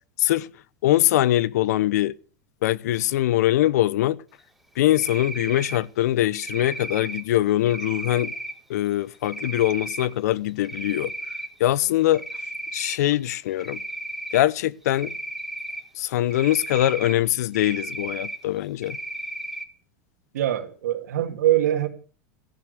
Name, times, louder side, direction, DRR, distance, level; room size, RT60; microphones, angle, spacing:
voice 1, 0.8-2.1 2.6-4.2 4.8-8.3 8.7-11.1 11.6-12.2 12.7-13.8 14.3-15.2 16.0-19.0, left 14 dB, 80° left, 0.8 m, -22 dB
Cricket, 4.9-5.8 6.3-7.2 7.7-8.5 9.2-10.1 10.5-11.5 11.8-13.0 13.6-14.4 14.9-15.8 16.3-17.1 17.5-18.4 18.8-19.6, right 1 dB, ahead, 2.1 m, -34 dB
voice 2, 20.3-21.9, right 12 dB, 90° right, 2.3 m, -23 dB
14.0 x 11.0 x 6.7 m
supercardioid pair, 130°, 9 cm